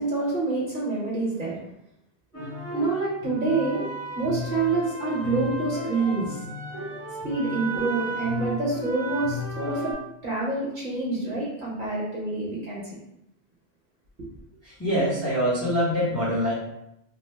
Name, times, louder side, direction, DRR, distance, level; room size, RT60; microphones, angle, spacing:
voice 1, 0.0-1.6 2.3-2.5 2.7-3.8 4.1-6.4 7.2-9.9 10.2-13.0 14.2-14.3, right 3 dB, 50° right, -6 dB, 1.0 m, -27 dB
sound 1, 2.3-9.9, equal, 35° left, 1.1 m, -34 dB
voice 2, 14.6-16.5, equal, 15° left, -7 dB, 0.8 m, -24 dB
2.8 x 2.0 x 3.3 m, 0.81 s
omnidirectional pair, 1.1 m